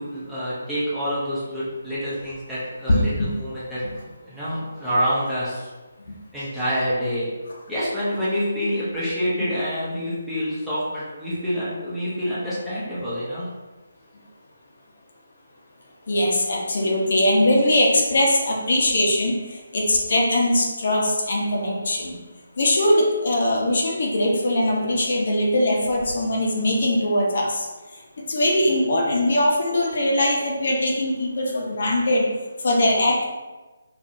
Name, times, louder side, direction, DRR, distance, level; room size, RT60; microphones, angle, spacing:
voice 1, 0.0-3.8 4.2-5.7 6.3-7.3 7.7-13.5, equal, ahead, -13 dB, 0.8 m, -27 dB
voice 2, 2.9-3.3 16.1-22.2 22.6-27.7 28.2-32.3 32.6-33.2, left 1 dB, 55° left, -1 dB, 0.9 m, -21 dB
4.6 x 2.7 x 2.7 m, 1.2 s
hypercardioid pair, 170°, 0 cm